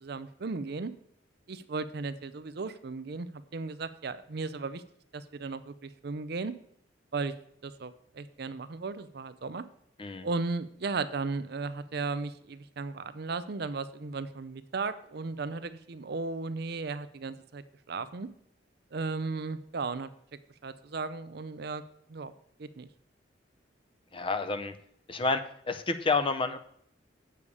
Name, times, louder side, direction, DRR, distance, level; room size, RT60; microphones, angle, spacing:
voice 1, 0.0-0.9 1.5-4.8 5.1-6.5 7.1-7.3 7.6-9.6 10.2-18.3 18.9-20.1 20.6-21.8 22.1-22.3 22.6-22.9, right 4 dB, 60° right, 13 dB, 0.6 m, -35 dB
voice 2, 24.1-24.7 25.1-25.4 25.7-26.6, left 3 dB, 30° left, 9 dB, 0.6 m, -29 dB
8.5 x 6.9 x 4.8 m, 0.67 s
head